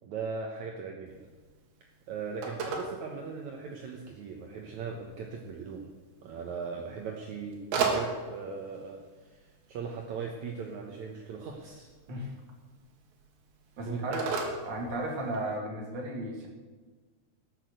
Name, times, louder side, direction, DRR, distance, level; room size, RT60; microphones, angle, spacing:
voice 1, 0.0-1.3 2.1-5.9 6.2-11.9 13.8-14.2, right 5 dB, 70° right, 1 dB, 1.8 m, -39 dB
Telephone, 1.1-15.6, right 5 dB, 85° right, 4.3 m, -39 dB
voice 2, 13.8-14.3 14.6-16.5, right 1 dB, 30° right, -1 dB, 2.5 m, -34 dB
18.5 x 6.6 x 8.0 m, 1.4 s
omnidirectional pair, 4.9 m